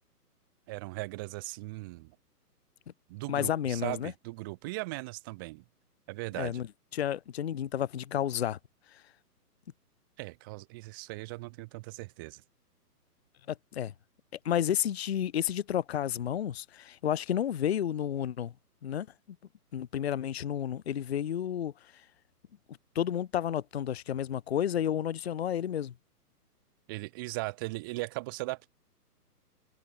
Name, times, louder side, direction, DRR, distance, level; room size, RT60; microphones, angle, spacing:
voice 1, 0.7-2.1 3.1-5.6 6.1-6.6 10.2-12.4 26.9-28.7, right 23 dB, 15° right, 0.8 m, -38 dB
voice 2, 3.3-4.1 6.4-6.7 6.9-8.6 13.7-13.9 14.4-18.5 18.8-19.1 19.7-21.7 23.0-25.9, left 10 dB, 45° left, 0.5 m, -31 dB
hypercardioid pair, 155°, 47 cm